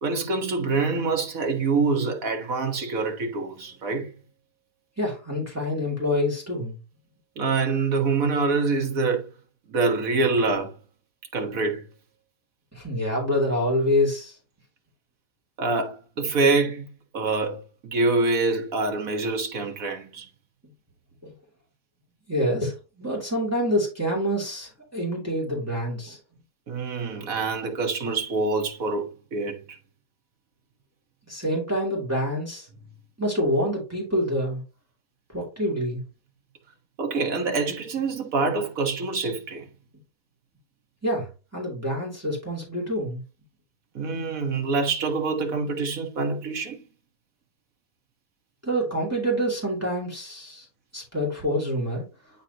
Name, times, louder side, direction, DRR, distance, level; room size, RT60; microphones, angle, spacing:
voice 1, 0.0-4.1 7.4-9.3 9.7-10.7 11.3-11.8 15.6-16.9 17.1-20.3 26.7-29.6 37.0-39.6 43.9-46.8, right 3 dB, 60° right, 1.7 m, -25 dB
voice 2, 5.0-6.8 12.7-14.4 21.2-21.3 22.3-26.2 31.3-32.7 33.2-34.6 35.3-36.0 41.0-43.2 48.6-50.7 50.9-52.0, equal, 10° right, 2.6 m, -26 dB
8.9 x 4.1 x 2.8 m
omnidirectional pair, 1.7 m